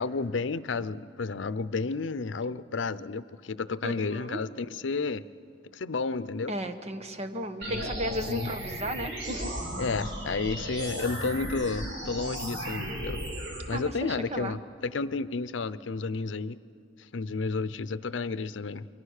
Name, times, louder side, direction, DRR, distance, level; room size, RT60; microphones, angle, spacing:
voice 1, 0.0-5.2 5.7-6.5 7.7-7.9 8.3-8.5 9.8-13.2 13.7-16.6 17.1-18.9, left 4 dB, 90° left, 16 dB, 0.6 m, -31 dB
voice 2, 3.8-4.4 6.5-9.6 13.7-14.6, equal, 35° right, 8 dB, 1.2 m, -34 dB
sound 1, 7.6-13.6, right 1 dB, 80° right, 6.4 m, -35 dB
28.0 x 23.0 x 6.6 m, 2.4 s
head